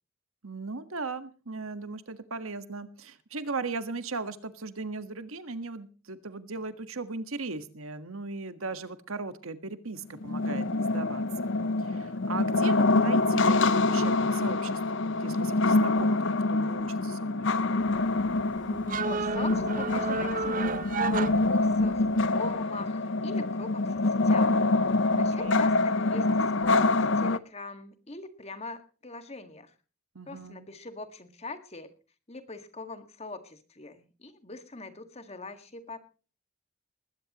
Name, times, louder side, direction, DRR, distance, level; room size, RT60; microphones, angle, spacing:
voice 1, 0.4-17.5 25.1-25.7 30.1-30.7, right 3 dB, 75° right, 11 dB, 1.6 m, -38 dB
sound 1, 10.2-27.4, left 2 dB, 55° left, 0.7 m, -26 dB
sound 2, 17.8-22.2, right 4 dB, 40° right, 0.7 m, -32 dB
voice 2, 19.0-22.0 22.3-24.6 25.2-29.7 30.3-31.9 32.3-36.0, left 3 dB, 30° left, 9 dB, 1.9 m, -42 dB
20.5 x 16.0 x 3.0 m, 0.37 s
head